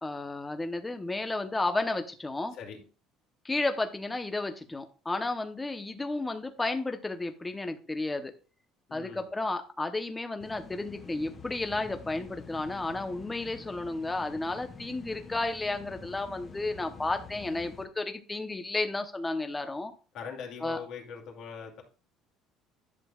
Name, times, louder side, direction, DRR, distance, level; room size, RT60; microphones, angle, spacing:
voice 1, 0.0-2.5 3.4-8.3 8.9-19.9 20.6-20.8, left 2 dB, 10° left, 7 dB, 0.9 m, -32 dB
voice 2, 2.5-2.8 8.9-9.2 20.1-21.8, left 6 dB, 60° left, 1 dB, 2.5 m, -41 dB
sound 1, 10.4-17.9, left 5 dB, 30° left, 1.2 m, -48 dB
11.0 x 6.8 x 2.4 m, 0.35 s
cardioid pair, 130°, 0 cm